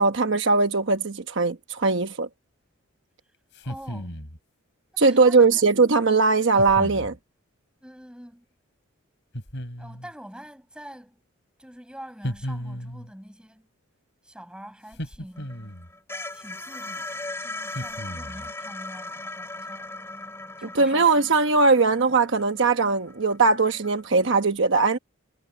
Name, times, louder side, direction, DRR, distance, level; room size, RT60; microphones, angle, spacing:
voice 1, 0.0-2.3 5.0-7.1 20.7-25.0, right 4 dB, 60° right, 1.1 m, -20 dB
sound 1, 3.5-4.4 6.6-7.2 9.3-10.1 12.2-13.1 14.9-15.9 17.7-18.5, equal, 55° left, 7.1 m, -35 dB
voice 2, 3.6-4.2 4.9-5.6 7.8-8.4 9.8-11.2 11.6-13.7 14.2-15.6 16.3-20.0 20.6-21.1, equal, 5° right, 8.0 m, -45 dB
sound 2, 15.4-24.2, left 2 dB, 10° left, 3.5 m, -38 dB
head